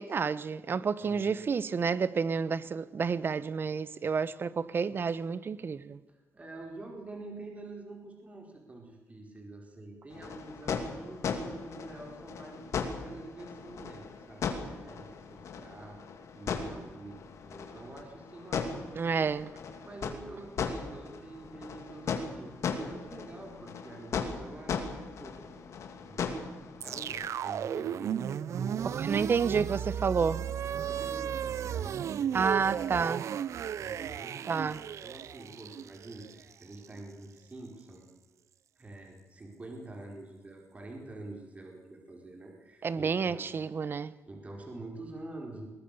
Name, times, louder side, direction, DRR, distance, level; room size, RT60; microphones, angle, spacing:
voice 1, 0.0-6.0 19.0-19.5 28.8-30.4 32.3-33.2 34.5-34.8 42.8-44.1, right 5 dB, 45° right, 1.0 m, -30 dB
voice 2, 6.1-16.0 16.3-19.4 19.8-24.8 25.2-25.5 25.9-29.2 30.7-33.1 33.8-34.7 35.0-38.1 38.8-43.5 44.3-45.7, right 2 dB, 25° right, 4.7 m, -47 dB
sound 1, 10.1-27.3, left 5 dB, 70° left, 2.8 m, -38 dB
sound 2, 26.8-37.0, right 9 dB, 70° right, 0.6 m, -35 dB
21.5 x 20.0 x 6.9 m
cardioid pair, 105°, 5 cm